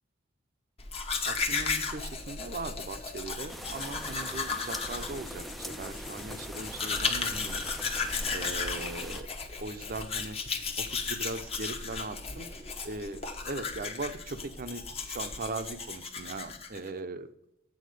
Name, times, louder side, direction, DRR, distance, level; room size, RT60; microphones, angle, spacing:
Domestic sounds home sounds, 0.8-16.9, left 4 dB, 30° left, 0.9 m, -35 dB
voice 1, 1.2-9.3 9.6-13.2 13.4-17.3, right 3 dB, 45° right, 10 dB, 0.7 m, -39 dB
sound 1, 3.5-9.2, equal, ahead, 0.4 m, -43 dB
8.5 x 4.2 x 6.7 m, 0.83 s
head